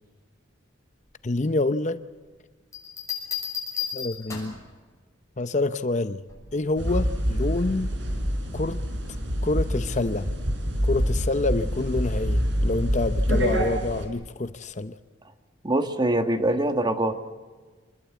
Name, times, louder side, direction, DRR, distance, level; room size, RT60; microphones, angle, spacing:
voice 1, 1.2-2.0 3.9-4.5 5.4-6.2 6.5-7.9 8.5-8.8 9.4-10.3 10.8-15.0, left 2 dB, 35° left, 12 dB, 0.7 m, -27 dB
sound 1, 2.7-4.7 6.3-6.6, left 7 dB, 15° left, 6.6 m, -33 dB
sound 2, 6.8-14.0, equal, 65° right, 4.8 m, -26 dB
voice 2, 15.6-17.2, right 1 dB, 20° right, 8 dB, 1.4 m, -23 dB
26.5 x 21.0 x 8.3 m, 1.4 s
head